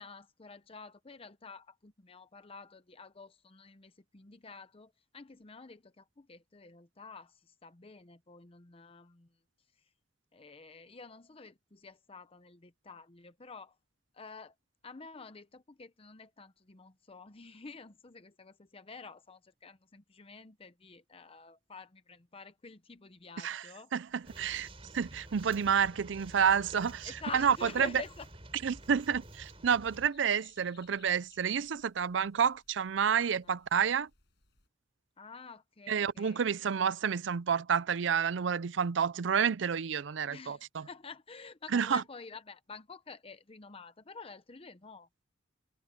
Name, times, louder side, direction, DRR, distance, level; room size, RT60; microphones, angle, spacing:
voice 1, 0.0-9.3 10.3-13.8 14.1-14.5 14.8-23.9 27.0-28.3 33.4-33.6 35.2-36.4 40.3-45.1, left 4 dB, 30° left, 0.8 m, -49 dB
voice 2, 23.9-24.7 24.9-27.9 28.6-34.1 35.9-40.9 41.7-42.0, right 7 dB, 70° right, 0.5 m, -29 dB
sound 1, 24.1-34.7, left 7 dB, 65° left, 5.9 m, -68 dB
sound 2, 24.2-30.1, right 1 dB, 30° right, 4.0 m, -50 dB
head